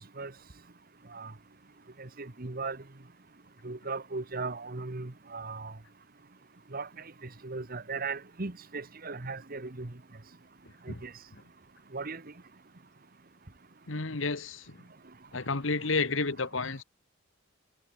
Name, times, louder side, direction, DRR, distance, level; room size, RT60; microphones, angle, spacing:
voice 1, 2.0-2.8 3.6-5.7 6.7-6.9 7.4-9.9 10.9-11.1 11.9-12.2, right 3 dB, 45° right, 1.4 m, -37 dB
voice 2, 13.9-14.8 15.3-16.8, left 4 dB, 75° left, 1.6 m, -31 dB
head